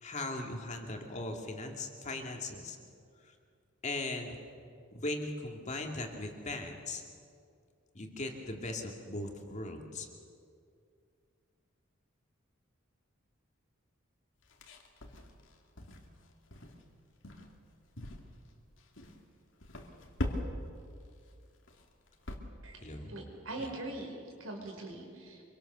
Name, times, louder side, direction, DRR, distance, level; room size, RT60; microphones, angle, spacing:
voice 1, 0.0-2.8 3.2-3.3 3.8-4.4 4.9-7.0 7.9-10.1 22.8-23.1 23.6-23.7, left 2 dB, 35° left, 2 dB, 2.4 m, -39 dB
sound 1, 14.4-16.2 16.5-16.8 17.2-17.6 18.0-18.5 18.8-19.2 19.6-20.8 21.1-21.3 21.7-22.4, left 1 dB, 65° left, 2.4 m, -40 dB
voice 2, 22.6-25.4, right 2 dB, 85° right, 2 dB, 5.2 m, -42 dB
25.5 x 24.0 x 6.8 m, 2.3 s
head